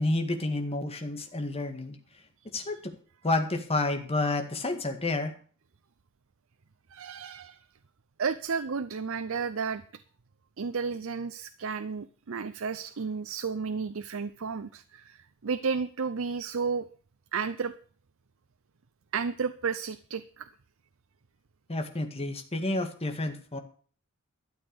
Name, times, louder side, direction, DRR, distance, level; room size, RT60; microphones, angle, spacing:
voice 1, 0.0-2.0 2.5-2.9 3.2-5.3 21.7-23.6, left 2 dB, 30° left, 5 dB, 1.9 m, -30 dB
voice 2, 6.9-7.6 8.2-9.8 10.6-16.9 17.3-17.7 19.1-20.5, right 5 dB, 70° right, 11 dB, 0.6 m, -32 dB
12.5 x 8.1 x 6.8 m, 0.44 s
head